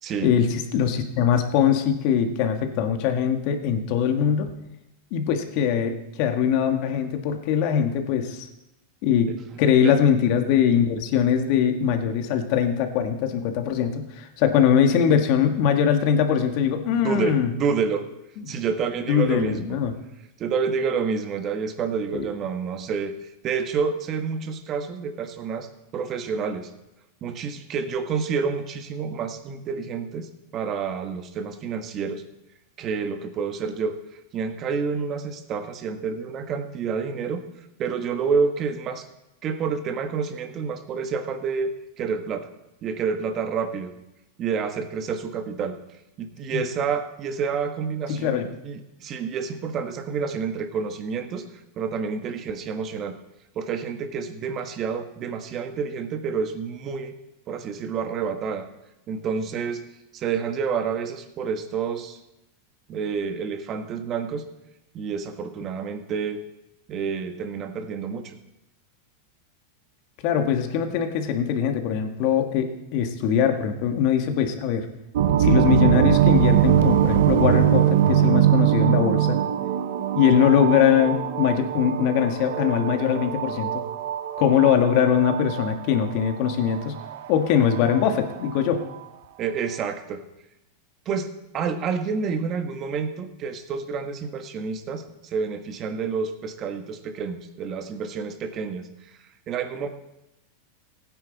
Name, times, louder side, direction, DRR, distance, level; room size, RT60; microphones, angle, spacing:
voice 1, 0.2-4.5 5.1-8.5 9.0-9.3 9.6-17.5 18.4-18.6 19.1-19.9 22.1-22.3 46.5-46.6 48.1-48.4 70.2-74.9 75.4-79.4 80.1-83.7 84.4-87.0 87.3-88.8, left 8 dB, 55° left, 6 dB, 1.7 m, -22 dB
voice 2, 17.0-18.1 18.5-19.8 20.4-23.1 23.4-25.7 25.9-26.7 27.2-32.2 32.8-33.9 34.3-37.4 37.8-39.0 39.4-42.5 42.8-43.9 44.4-45.8 46.2-51.4 51.8-53.2 53.5-57.2 57.5-58.7 59.1-59.8 60.1-62.2 62.9-64.4 64.9-66.4 66.9-68.4 89.4-90.2 91.0-98.9 99.5-99.9, right 5 dB, 35° right, 7 dB, 1.4 m, -28 dB
sound 1, 75.2-88.6, right 10 dB, 75° right, 0.8 m, -22 dB
16.5 x 9.6 x 4.1 m, 0.90 s
supercardioid pair, 125°, 0 cm